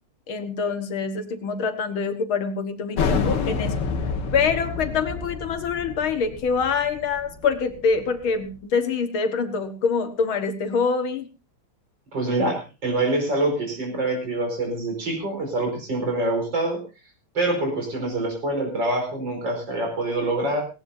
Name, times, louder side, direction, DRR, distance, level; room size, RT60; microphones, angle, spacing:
voice 1, 0.3-3.8 4.3-11.3, left 5 dB, 70° left, 8 dB, 2.2 m, -25 dB
sound 1, 3.0-8.3, left 5 dB, 90° left, 2.5 m, -28 dB
voice 2, 12.1-16.8 17.3-20.6, right 2 dB, 55° right, 2 dB, 5.6 m, -25 dB
18.0 x 17.5 x 2.7 m, 0.30 s
omnidirectional pair, 2.4 m